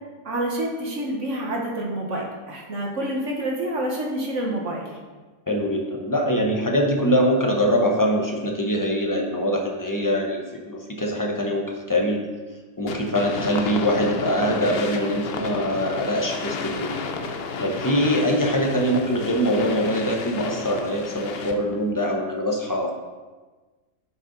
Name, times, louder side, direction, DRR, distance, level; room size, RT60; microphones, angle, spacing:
voice 1, 0.2-5.0, right 1 dB, 50° right, -1 dB, 1.6 m, -28 dB
voice 2, 5.5-12.2 12.8-16.9 17.6-22.9, equal, 20° left, 0 dB, 0.6 m, -23 dB
sound 1, 12.9-21.8, left 4 dB, 60° left, 0.6 m, -32 dB
9.4 x 5.2 x 3.9 m, 1.3 s
omnidirectional pair, 1.8 m